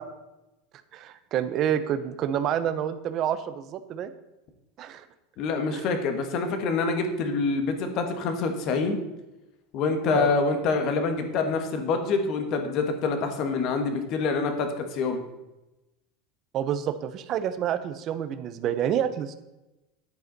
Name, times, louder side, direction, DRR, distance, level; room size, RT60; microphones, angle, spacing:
voice 1, 0.9-4.1 4.8-5.0 5.7-5.9 10.1-10.3 16.5-19.3, right 9 dB, 30° right, 11 dB, 0.6 m, -28 dB
voice 2, 5.4-9.0 9.7-15.2, left 4 dB, 35° left, 6 dB, 1.4 m, -26 dB
10.5 x 9.5 x 4.0 m, 0.99 s
supercardioid pair, 180°, 0 cm